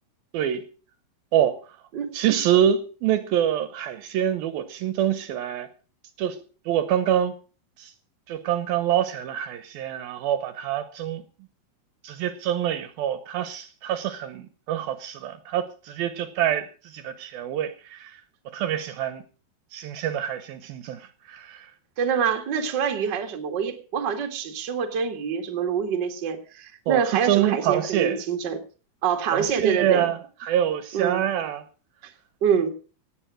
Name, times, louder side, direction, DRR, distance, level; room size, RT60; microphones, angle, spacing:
voice 1, 0.3-0.7 1.3-1.6 2.1-5.7 6.2-7.3 7.8-7.9 8.3-11.2 12.0-18.2 18.5-19.2 19.7-21.7 26.9-28.2 29.3-31.6, right 10 dB, 75° right, 2.5 m, -26 dB
voice 2, 22.0-28.6 29.0-30.1 30.9-31.2 32.4-32.7, right 7 dB, 40° right, 1.6 m, -26 dB
17.0 x 9.4 x 6.2 m
omnidirectional pair, 4.7 m